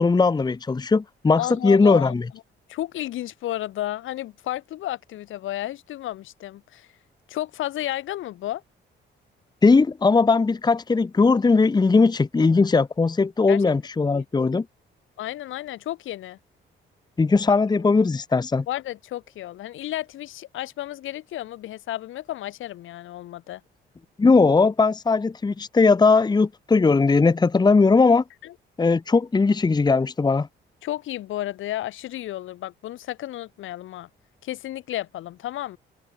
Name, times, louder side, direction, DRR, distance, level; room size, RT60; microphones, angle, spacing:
voice 1, 0.0-2.2 9.6-14.6 17.2-18.6 24.2-28.2 28.8-30.5, left 4 dB, 20° left, 0.9 m, -19 dB
voice 2, 1.4-2.1 2.7-6.9 7.3-8.6 13.5-13.7 14.1-14.2 15.2-16.4 18.7-23.6 28.4-28.5 30.8-34.1 34.4-35.8, left 14 dB, 85° left, 5.6 m, -32 dB
open air
cardioid pair, 90°, 20 cm